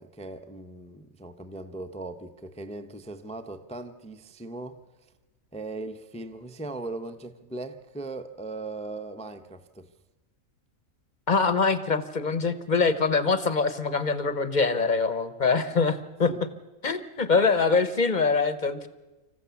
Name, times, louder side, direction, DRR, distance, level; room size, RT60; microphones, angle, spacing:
voice 1, 0.0-4.8 5.5-9.9 16.2-16.4, right 2 dB, 5° left, 0.5 m, -39 dB
voice 2, 11.3-16.3 16.8-18.9, left 4 dB, 40° left, 0.9 m, -24 dB
25.5 x 15.0 x 7.0 m
omnidirectional pair, 1.5 m